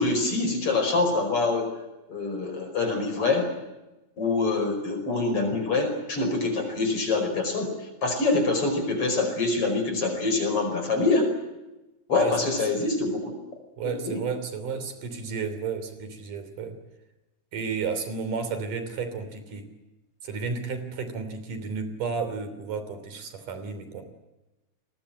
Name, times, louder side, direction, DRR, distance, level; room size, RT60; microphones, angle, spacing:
voice 1, 0.0-1.7 2.1-3.5 4.2-7.7 8.0-11.3 12.1-13.3 14.0-14.2, left 3 dB, 45° left, 6 dB, 5.9 m, -25 dB
voice 2, 13.8-16.8 17.5-19.7 20.2-24.0, right 5 dB, 75° right, 9 dB, 4.7 m, -32 dB
28.5 x 21.0 x 7.7 m, 1.0 s
omnidirectional pair, 3.7 m